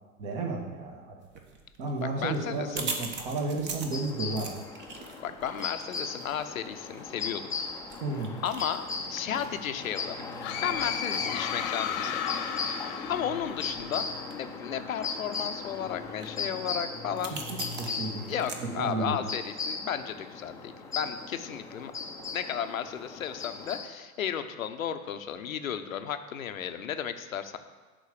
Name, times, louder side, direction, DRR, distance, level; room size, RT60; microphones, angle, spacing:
voice 1, 0.2-1.2 1.8-4.7 8.0-8.4 17.8-18.3 18.6-19.2, right 3 dB, 45° right, 1 dB, 1.9 m, -32 dB
sound 1, 1.2-18.6, right 4 dB, 25° right, 1.0 m, -44 dB
voice 2, 2.2-2.9 5.2-7.4 8.4-10.2 10.6-12.4 12.7-14.1 14.4-17.4 18.3-21.9 22.3-27.6, left 8 dB, 70° left, 9 dB, 0.8 m, -34 dB
sound 2, 3.9-23.9, left 4 dB, 5° left, 0.6 m, -37 dB
sound 3, 10.4-14.1, left 8 dB, 35° left, 1.0 m, -34 dB
11.0 x 3.9 x 6.9 m, 1.3 s
figure-of-eight pair, 100°, 43 cm